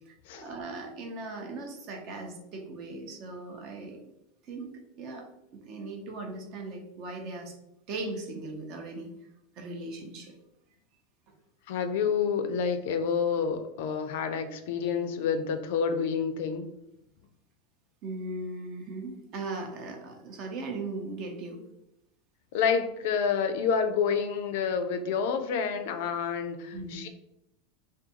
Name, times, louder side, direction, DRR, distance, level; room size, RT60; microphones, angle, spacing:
voice 1, 0.1-4.0 4.4-5.2 5.7-7.5 7.9-9.1 9.6-10.3 18.0-21.6 26.7-27.1, right 2 dB, 50° right, 2 dB, 0.6 m, -38 dB
voice 2, 11.7-16.7 22.5-27.1, left 6 dB, 70° left, 8 dB, 0.3 m, -28 dB
2.4 x 2.2 x 2.8 m, 0.84 s
supercardioid pair, 120°, 0 cm